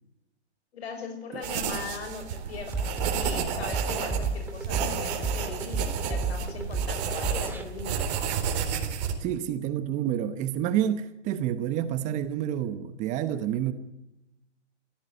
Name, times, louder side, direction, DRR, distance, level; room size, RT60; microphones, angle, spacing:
voice 1, 0.7-8.1, left 5 dB, 65° left, 6.4 m, -39 dB
sound 1, 1.4-9.1, right 7 dB, 35° right, 4.0 m, -31 dB
sound 2, 2.7-7.6, right 3 dB, 5° right, 2.0 m, -31 dB
voice 2, 9.2-13.7, right 10 dB, 20° right, 1.0 m, -28 dB
20.0 x 16.0 x 9.5 m
hypercardioid pair, 140°, 35 cm